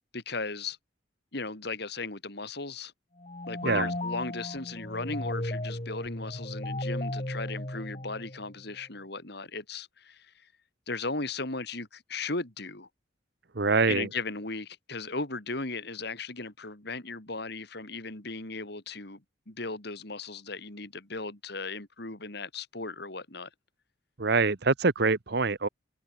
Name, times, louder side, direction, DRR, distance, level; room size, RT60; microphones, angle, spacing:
voice 1, 0.1-0.8 1.3-2.9 3.5-10.3 10.9-12.9 13.9-19.2 19.5-23.5, left 3 dB, 60° left, 3.1 m, -36 dB
sound 1, 3.2-8.7, left 1 dB, 35° left, 3.1 m, -35 dB
voice 2, 13.5-14.1 24.2-25.7, right 4 dB, 60° right, 1.0 m, -25 dB
head